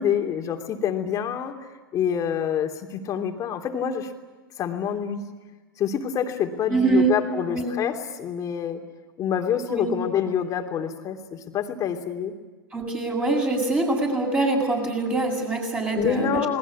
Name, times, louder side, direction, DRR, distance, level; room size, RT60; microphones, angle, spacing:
voice 1, 0.0-1.6 1.9-4.1 4.6-5.2 5.8-8.8 9.2-12.3 15.9-16.6, left 8 dB, 30° left, 4 dB, 3.1 m, -26 dB
voice 2, 6.7-7.1 7.5-7.8 9.7-9.9 12.7-16.6, right 3 dB, 15° right, -1 dB, 7.3 m, -24 dB
28.5 x 20.5 x 8.6 m, 1.3 s
hypercardioid pair, 120°, 12 cm